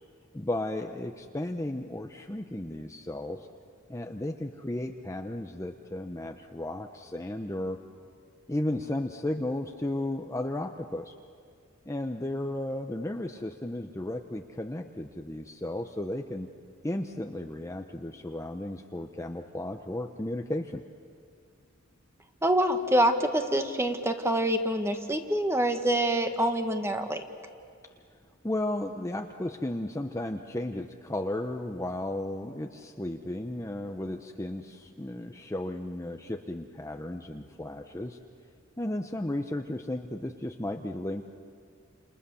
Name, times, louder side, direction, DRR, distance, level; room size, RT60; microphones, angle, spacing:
voice 1, 0.3-3.5 3.9-7.8 8.5-11.1 11.9-16.5 16.8-20.8 28.4-38.2 38.8-41.2, left 1 dB, 15° left, 4 dB, 0.8 m, -34 dB
voice 2, 22.4-27.2, right 1 dB, 15° right, 6 dB, 1.6 m, -26 dB
29.5 x 28.0 x 7.0 m, 2.2 s
head